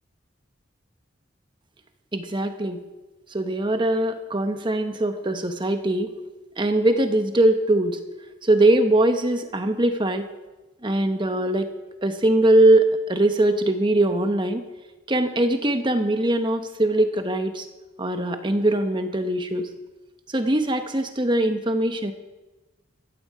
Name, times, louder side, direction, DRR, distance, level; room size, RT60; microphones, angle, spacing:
voice 1, 2.1-2.8 3.3-6.1 6.6-8.0 8.4-10.3 10.8-11.7 12.0-14.6 15.1-17.7 18.0-19.7 20.3-22.1, right 1 dB, 25° right, 7 dB, 1.1 m, -21 dB
15.0 x 14.0 x 4.9 m, 1.1 s
head